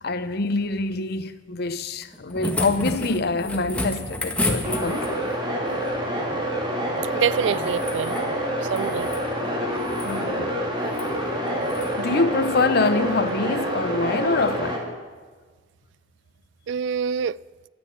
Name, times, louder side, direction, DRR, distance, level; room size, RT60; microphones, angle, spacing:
voice 1, 0.0-5.2 10.0-10.7 12.0-14.8, left 3 dB, 60° left, 0.8 m, -25 dB
sound 1, 2.0-5.3 7.3-8.3 8.6-9.3 9.8-10.2 10.9-11.1 11.7-11.9 13.3-13.4, left 1 dB, 5° left, 1.6 m, -30 dB
sound 2, 4.6-14.8, equal, 25° right, 2.7 m, -27 dB
voice 2, 7.1-8.2 8.7-9.1 16.7-17.4, right 7 dB, 70° right, 0.3 m, -25 dB
12.0 x 9.8 x 8.8 m
head